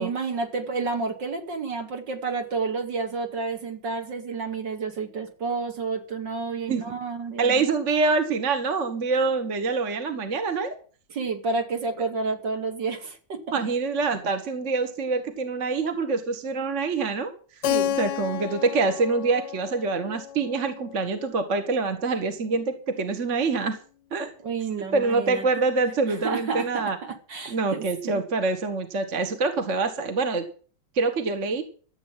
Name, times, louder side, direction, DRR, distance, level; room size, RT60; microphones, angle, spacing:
voice 1, 0.0-7.7 11.1-13.6 17.6-18.0 24.4-25.5 26.2-28.2, right 4 dB, 60° right, 5 dB, 3.0 m, -30 dB
voice 2, 7.4-10.7 13.5-17.3 18.0-23.8 24.1-24.3 24.9-27.0 27.5-30.4 31.0-31.6, right 4 dB, 40° right, 8 dB, 1.6 m, -25 dB
Keyboard (musical), 17.6-22.2, left 10 dB, 65° left, 1.3 m, -32 dB
14.0 x 8.3 x 7.4 m, 0.41 s
omnidirectional pair, 2.3 m